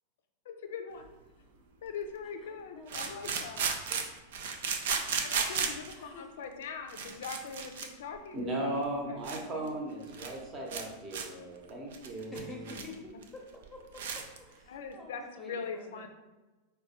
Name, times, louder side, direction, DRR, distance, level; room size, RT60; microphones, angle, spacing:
voice 1, 0.5-1.1 1.8-3.7 5.2-8.8 9.1-9.3 9.5-9.7 12.7-13.1 14.7-16.1, left 5 dB, 60° left, 6 dB, 0.4 m, -42 dB
sound 1, 1.0-1.1 2.9-5.9 6.6-6.7 6.9-7.9 8.2-8.3 8.8-8.9 9.2-9.4 9.7-9.8 10.0-10.4 10.7-10.8 11.1-11.3 11.7-12.9 13.2-13.3 13.6-13.7 13.9-14.4, right 6 dB, 55° right, 0.4 m, -34 dB
voice 2, 2.5-3.1 3.5-4.0 6.0-6.4 9.6-9.7 11.6-11.8 12.3-16.1, left 2 dB, 5° left, 0 dB, 0.8 m, -50 dB
voice 3, 8.3-12.7, right 1 dB, 30° right, 0 dB, 0.8 m, -37 dB
4.7 x 2.2 x 2.9 m, 1.2 s
figure-of-eight pair, 90°, 0 cm